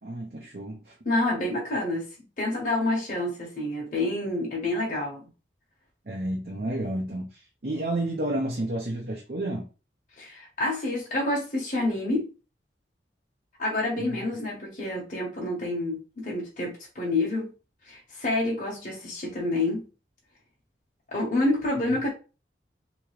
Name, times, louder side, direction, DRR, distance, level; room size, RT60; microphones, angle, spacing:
voice 1, 0.0-1.0 6.0-9.7 14.0-14.2, right 1 dB, 55° right, 0.8 m, -31 dB
voice 2, 1.0-2.1 2.4-5.2 10.2-12.3 13.6-17.5 17.9-19.8 21.1-22.1, left 2 dB, 45° left, 1.3 m, -28 dB
3.5 x 3.0 x 3.2 m
head